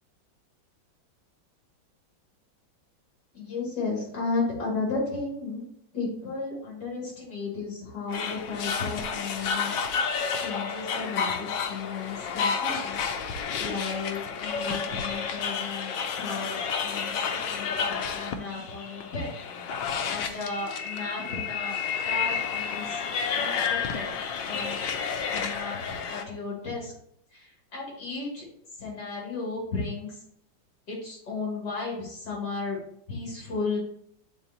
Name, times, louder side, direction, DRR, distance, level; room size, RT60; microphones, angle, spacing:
voice 1, 3.3-5.6 5.9-9.7 10.4-13.0 13.6-19.3 20.0-23.0 23.3-24.1 24.4-24.8 25.3-25.8 26.1-26.9 27.3-28.5 28.8-30.2 30.9-32.8 33.1-33.8, left 3 dB, 60° left, -4 dB, 3.1 m, -34 dB
sound 1, 8.1-26.2, left 6 dB, 75° left, 1.3 m, -31 dB
8.8 x 3.8 x 2.8 m, 0.69 s
omnidirectional pair, 2.1 m